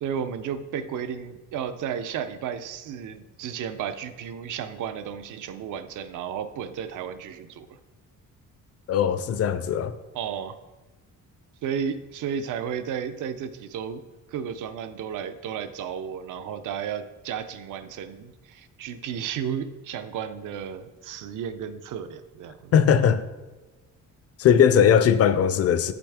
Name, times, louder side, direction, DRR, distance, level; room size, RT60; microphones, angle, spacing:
voice 1, 0.0-7.7 10.1-10.6 11.6-14.0 14.3-22.7 24.8-24.9, right 8 dB, 75° right, 0.6 m, -33 dB
voice 2, 8.9-9.9 22.7-23.2 24.4-25.9, left 8 dB, 50° left, 0.4 m, -19 dB
8.0 x 5.9 x 3.5 m
cardioid pair, 175°, 31 cm